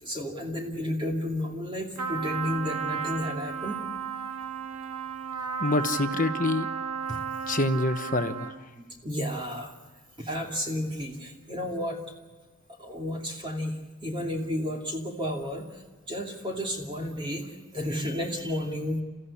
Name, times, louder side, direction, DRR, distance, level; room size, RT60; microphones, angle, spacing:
voice 1, 0.0-3.8 7.1-7.2 9.0-9.7 10.2-12.0 12.8-13.7 14.0-19.0, left 1 dB, 20° right, 0 dB, 2.6 m, -32 dB
Trumpet, 2.0-8.7, right 7 dB, 85° right, 1.8 m, -34 dB
voice 2, 5.6-6.7 7.5-8.6, left 2 dB, 35° left, 9 dB, 1.1 m, -26 dB
29.5 x 15.5 x 9.9 m, 1.4 s
head